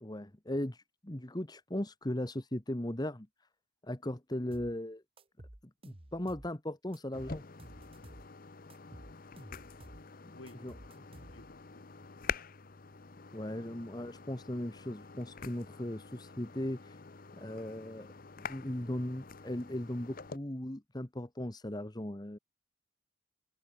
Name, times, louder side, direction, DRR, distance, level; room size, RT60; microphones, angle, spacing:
voice 1, 0.0-3.3 3.8-5.0 5.8-7.4 10.2-10.3 10.6-10.7 13.3-17.0 17.3-18.1 18.4-22.4, left 1 dB, 20° left, 1.3 m, -38 dB
sound 1, 4.5-4.8 5.2-6.5 6.9-8.3 8.7-10.1 10.5-11.6, right 1 dB, 30° right, 1.7 m, -52 dB
sound 2, 7.1-20.4, left 5 dB, 45° left, 0.9 m, -46 dB
voice 2, 10.3-10.8 11.3-12.5, left 2 dB, 85° left, 3.0 m, -56 dB
head